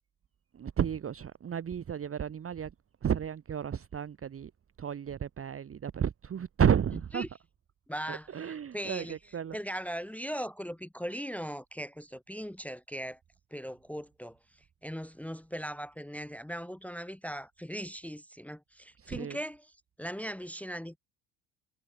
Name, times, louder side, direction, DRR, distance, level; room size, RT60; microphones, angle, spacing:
voice 1, 0.5-2.7 3.0-4.5 4.8-7.3 8.1-9.6 19.0-19.4, right 8 dB, 30° right, 1.1 m, -32 dB
voice 2, 7.9-9.2 9.5-13.2 13.5-21.0, equal, 5° left, 1.3 m, -39 dB
supercardioid pair, 90°, 42 cm